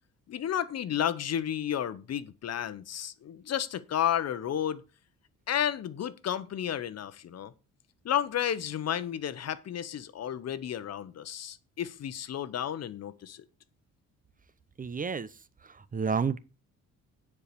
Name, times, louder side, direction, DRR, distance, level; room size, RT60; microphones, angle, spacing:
voice 1, 0.3-4.8 5.5-7.5 8.0-13.4, left 10 dB, 55° left, 1.0 m, -32 dB
voice 2, 14.8-15.3 15.7-16.4, right 5 dB, 30° right, 0.7 m, -30 dB
9.9 x 4.7 x 6.8 m
cardioid pair, 90°, 30 cm